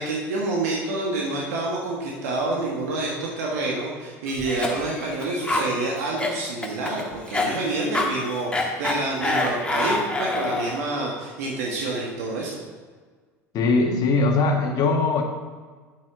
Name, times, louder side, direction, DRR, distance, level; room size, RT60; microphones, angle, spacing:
voice 1, 0.0-12.6, right 2 dB, 75° right, -2 dB, 1.5 m, -28 dB
Cough, 4.3-10.9, left 2 dB, 10° left, 1.6 m, -27 dB
voice 2, 13.5-15.2, left 3 dB, 50° left, 2 dB, 1.6 m, -20 dB
9.4 x 7.6 x 3.8 m, 1.5 s
hypercardioid pair, 75°, 8 cm